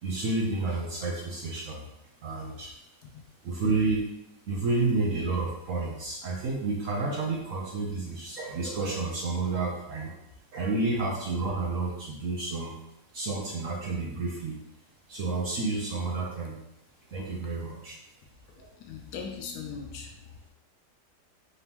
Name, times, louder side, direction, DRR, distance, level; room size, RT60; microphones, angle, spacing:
voice 1, 0.0-1.9 2.2-2.8 3.4-4.0 4.5-10.1 10.5-12.8 13.1-14.6 15.1-16.6 17.1-18.0 18.6-18.7, right 3 dB, 60° right, -2 dB, 0.9 m, -30 dB
voice 2, 18.5-20.5, left 6 dB, 70° left, 3 dB, 1.1 m, -40 dB
4.0 x 3.5 x 2.9 m, 0.83 s
omnidirectional pair, 1.8 m